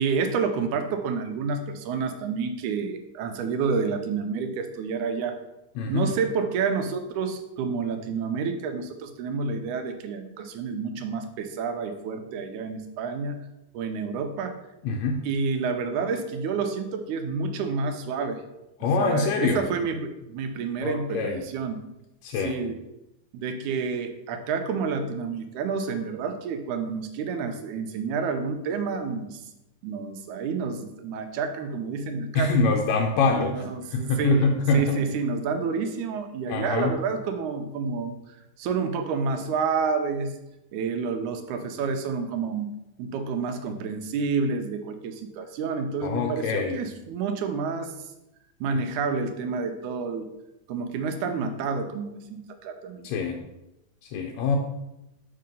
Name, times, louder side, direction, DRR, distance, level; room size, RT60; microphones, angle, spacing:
voice 1, 0.0-5.4 5.9-13.5 13.7-14.6 15.2-18.4 19.0-21.8 22.3-22.8 23.3-29.4 29.8-32.5 33.2-38.1 38.6-40.3 40.7-42.7 43.0-48.1 48.6-50.3 50.7-53.1, right 5 dB, 90° right, 7 dB, 2.1 m, -29 dB
voice 2, 5.8-6.1 14.8-15.2 18.8-19.7 20.8-21.4 22.2-22.6 32.4-33.7 33.9-35.0 36.5-37.0 46.0-46.8 53.0-53.4 54.0-54.6, left 4 dB, 75° left, 2 dB, 1.7 m, -25 dB
6.7 x 3.7 x 5.3 m, 0.93 s
omnidirectional pair, 3.5 m